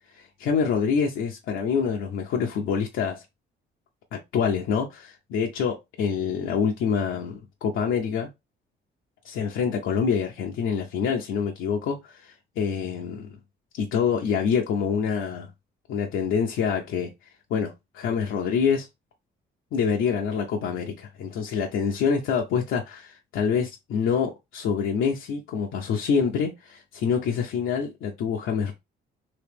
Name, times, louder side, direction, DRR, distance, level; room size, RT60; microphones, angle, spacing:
voice 1, 0.2-3.2 4.1-8.3 9.2-13.4 13.8-15.5 15.9-17.1 17.5-18.9 19.7-28.7, left 6 dB, 80° left, 0.7 m, -26 dB
3.0 x 2.9 x 3.3 m
cardioid pair, 90°, 20 cm